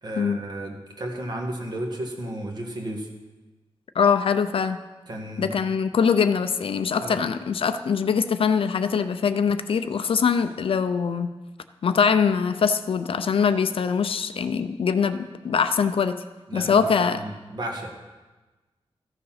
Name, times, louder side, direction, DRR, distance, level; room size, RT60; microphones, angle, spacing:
voice 1, 0.0-3.1 5.1-5.6 7.0-7.2 16.5-17.9, right 1 dB, 45° right, 2 dB, 1.6 m, -33 dB
voice 2, 4.0-4.8 5.4-11.3 11.8-16.2 16.5-17.2, left 6 dB, 65° left, 10 dB, 0.5 m, -23 dB
14.5 x 6.8 x 5.7 m, 1.2 s
wide cardioid pair, 175°, 10 cm